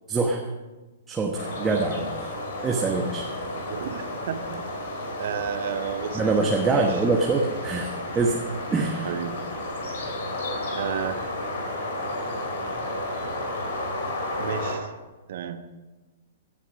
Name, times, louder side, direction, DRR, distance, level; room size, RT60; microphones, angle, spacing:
voice 1, 0.1-0.4 1.1-2.3 2.6-3.3 6.1-8.4 8.7-9.1, right 3 dB, 15° right, 1 dB, 1.2 m, -24 dB
sound 1, 1.3-14.8, left 1 dB, 60° left, 3.1 m, -32 dB
voice 2, 3.5-4.7 5.2-7.0 9.0-9.5 10.7-11.3 14.4-14.9 15.3-15.6, right 8 dB, 55° right, 10 dB, 1.1 m, -32 dB
17.0 x 9.0 x 5.2 m, 1.2 s
figure-of-eight pair, 110°, 0 cm